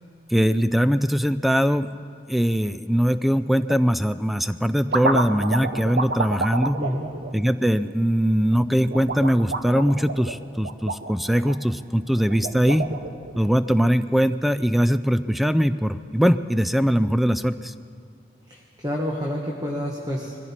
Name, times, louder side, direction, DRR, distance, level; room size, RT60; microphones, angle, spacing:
voice 1, 0.3-2.0 2.3-6.8 7.3-12.9 13.4-17.7, equal, ahead, 13 dB, 0.3 m, -21 dB
sound 1, 3.5-3.9 4.5-8.1 8.9-11.6 12.2-13.5, right 3 dB, 65° right, 0.8 m, -29 dB
voice 2, 6.8-7.2 18.5-20.4, equal, 20° right, -1 dB, 1.3 m, -29 dB
21.5 x 15.0 x 4.4 m, 2.2 s
head